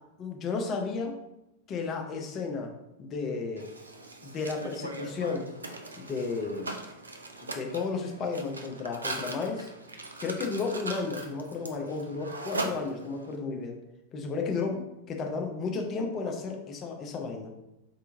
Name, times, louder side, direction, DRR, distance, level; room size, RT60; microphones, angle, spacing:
voice 1, 0.2-1.2 1.7-2.7 3.0-3.7 4.2-5.5 6.0-6.7 7.4-9.7 10.2-13.8 14.1-17.5, left 4 dB, 30° left, 3 dB, 0.5 m, -33 dB
Mechanisms, 3.6-13.3, right 2 dB, 75° right, 0.3 m, -40 dB
3.3 x 2.7 x 2.6 m, 0.89 s
figure-of-eight pair, 90°, 0 cm